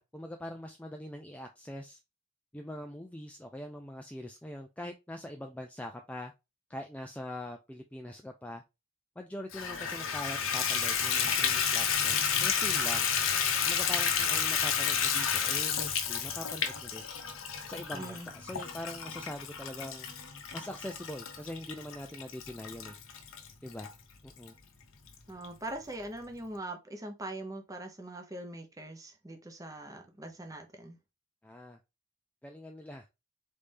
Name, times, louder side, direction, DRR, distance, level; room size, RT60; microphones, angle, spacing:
voice 1, 0.0-2.0 2.5-6.3 6.7-8.6 9.2-13.1 13.6-17.1 17.7-20.1 20.5-23.0 23.6-23.9 24.2-24.5 31.4-31.8 32.4-33.1, left 1 dB, 5° left, 0.3 m, -43 dB
Water tap faucet / Bathtub (filling or washing), 9.5-23.9 24.5-24.6 25.1-25.2 25.4-25.5, left 7 dB, 80° left, 0.8 m, -31 dB
voice 2, 17.9-18.3 25.3-31.0, right 1 dB, 15° right, 0.7 m, -42 dB
4.1 x 3.3 x 3.3 m
head